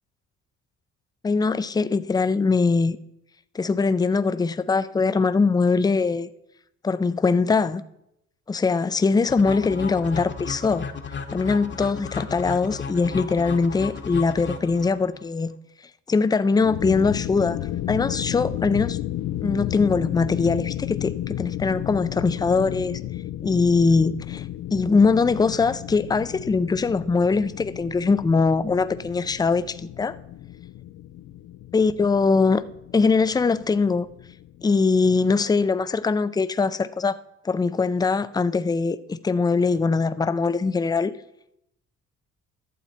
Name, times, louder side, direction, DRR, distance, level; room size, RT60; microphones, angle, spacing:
voice 1, 1.2-3.0 3.5-6.3 6.8-7.8 8.5-10.8 11.3-15.5 16.1-17.6 17.9-19.0 19.4-23.0 23.4-24.4 24.7-30.2 31.7-32.6 32.9-34.1 34.6-37.2 37.4-41.1, left 4 dB, 15° left, 0.4 m, -22 dB
sound 1, 9.3-15.2, left 6 dB, 40° left, 1.0 m, -34 dB
sound 2, 16.5-35.4, left 13 dB, 80° left, 0.5 m, -33 dB
12.0 x 7.2 x 4.2 m
cardioid pair, 90°, 30 cm